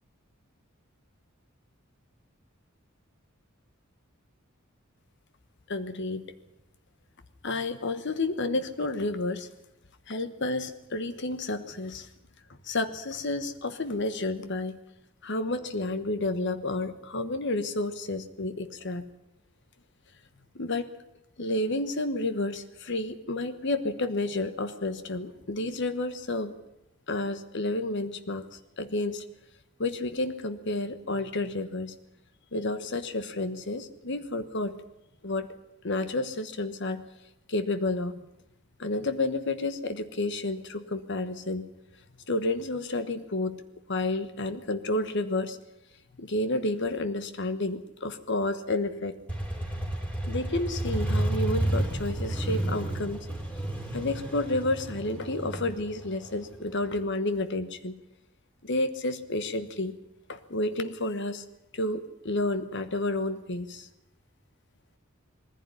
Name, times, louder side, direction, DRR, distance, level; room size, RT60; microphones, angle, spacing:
voice 1, 5.7-6.3 7.4-9.5 10.1-12.1 12.6-14.8 15.2-19.1 20.5-20.9 21.4-26.6 27.1-29.2 29.8-31.9 32.5-34.7 35.2-35.5 35.8-37.1 37.5-38.2 38.8-41.7 42.3-43.6 43.9-45.6 46.2-49.2 50.3-53.3 53.9-58.0 58.6-60.0 60.3-61.4 61.7-63.9, left 2 dB, 60° left, 10 dB, 1.2 m, -30 dB
Motorcycle, 49.3-56.9, right 1 dB, 5° left, 3.2 m, -31 dB
20.5 x 15.5 x 9.8 m, 0.86 s
head